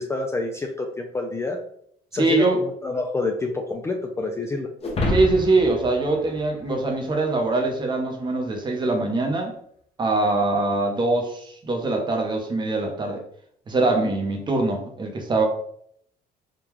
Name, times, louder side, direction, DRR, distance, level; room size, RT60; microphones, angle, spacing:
voice 1, 0.0-1.6 2.1-4.7, left 3 dB, 15° left, 3 dB, 0.4 m, -28 dB
voice 2, 2.1-2.6 5.1-9.5 10.0-13.2 13.7-15.4, right 2 dB, 25° right, 3 dB, 0.8 m, -23 dB
sound 1, 4.8-7.3, left 1 dB, 35° left, 0.9 m, -28 dB
3.6 x 2.3 x 3.0 m, 0.66 s
cardioid pair, 110°, 17 cm